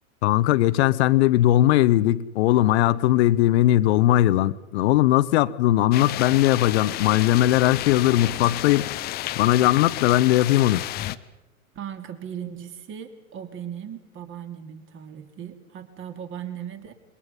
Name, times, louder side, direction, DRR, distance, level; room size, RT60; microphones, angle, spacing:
voice 1, 0.2-8.9 9.3-10.8, left 14 dB, 50° left, 16 dB, 1.0 m, -19 dB
sound 1, 5.9-11.2, left 15 dB, 20° left, 0.7 m, -31 dB
voice 2, 11.7-16.9, right 9 dB, 30° right, 8 dB, 2.6 m, -37 dB
27.0 x 23.0 x 5.4 m, 0.97 s
hypercardioid pair, 120°, 43 cm